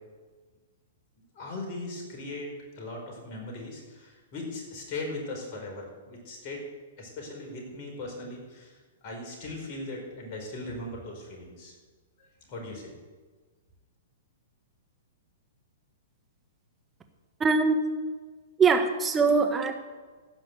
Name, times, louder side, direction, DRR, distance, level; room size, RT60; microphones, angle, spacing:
voice 1, 1.3-6.7 7.0-11.7 12.2-12.9, left 2 dB, 40° left, 0 dB, 4.7 m, -39 dB
voice 2, 17.4-17.8 18.6-19.7, right 4 dB, 15° right, 6 dB, 1.4 m, -22 dB
15.5 x 5.9 x 8.0 m, 1.4 s
hypercardioid pair, 120°, 0 cm